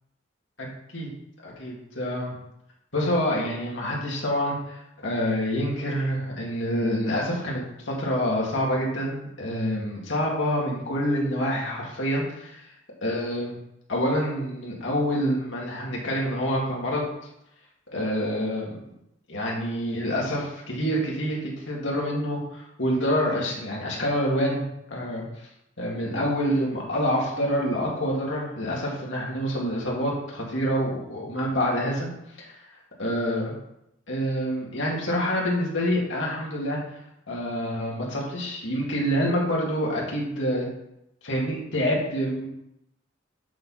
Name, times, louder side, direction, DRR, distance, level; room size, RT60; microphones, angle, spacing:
voice 1, 1.4-2.4 2.9-12.6 13.0-13.5 13.9-17.1 17.9-18.8 19.3-24.6 24.9-25.2 25.8-32.1 32.4-32.5 33.0-33.5 34.1-36.8 37.3-40.7 41.2-42.5, equal, 75° left, -3 dB, 2.4 m, -27 dB
7.7 x 5.9 x 4.2 m, 0.82 s
head